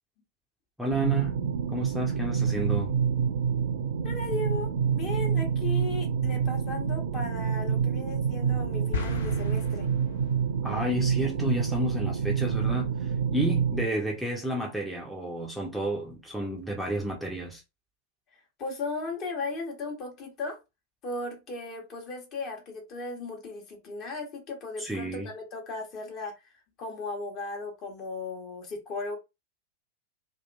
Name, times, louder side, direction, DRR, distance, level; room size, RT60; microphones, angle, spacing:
voice 1, 0.8-1.4 1.7-2.9 10.6-17.6 24.8-25.3, right 1 dB, ahead, 0.6 m, -31 dB
sound 1, 0.9-13.9, right 7 dB, 60° right, 0.4 m, -27 dB
voice 2, 4.0-9.9 18.6-20.6 21.0-26.3 26.8-29.2, left 3 dB, 35° left, 1.0 m, -36 dB
sound 2, 8.9-10.6, left 5 dB, 60° left, 0.5 m, -35 dB
2.7 x 2.4 x 2.2 m
figure-of-eight pair, 90°, 0 cm